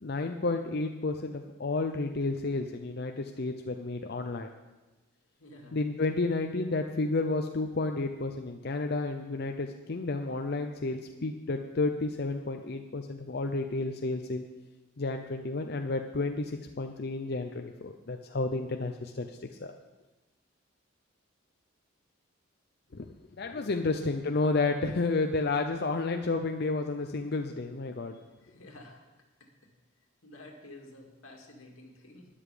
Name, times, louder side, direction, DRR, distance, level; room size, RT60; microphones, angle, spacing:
voice 1, 0.0-4.5 5.7-14.4 15.0-19.3 19.6-19.7 22.9-23.1 23.4-28.2, left 3 dB, 50° left, 5 dB, 0.6 m, -31 dB
voice 2, 5.4-5.8 23.5-24.1 28.4-29.0 29.4-29.5 30.2-32.3, left 1 dB, 90° left, 1 dB, 2.3 m, -51 dB
12.5 x 10.0 x 5.1 m, 1.1 s
head